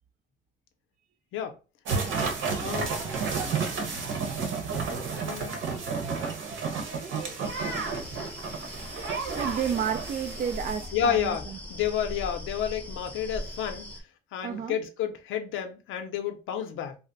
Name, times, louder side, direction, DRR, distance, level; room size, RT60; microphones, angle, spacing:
sound 1, 1.9-10.9, right 5 dB, 80° right, 0.9 m, -31 dB
voice 1, 2.6-3.0 5.2-5.6 10.9-11.4 11.7-13.9 14.3-17.0, left 9 dB, 85° left, 0.6 m, -30 dB
sound 2, 7.4-14.0, left 1 dB, 10° left, 0.6 m, -40 dB
voice 2, 9.3-11.6 14.4-14.8, right 8 dB, 45° right, 0.4 m, -31 dB
2.4 x 2.0 x 3.9 m
cardioid pair, 90°, 20 cm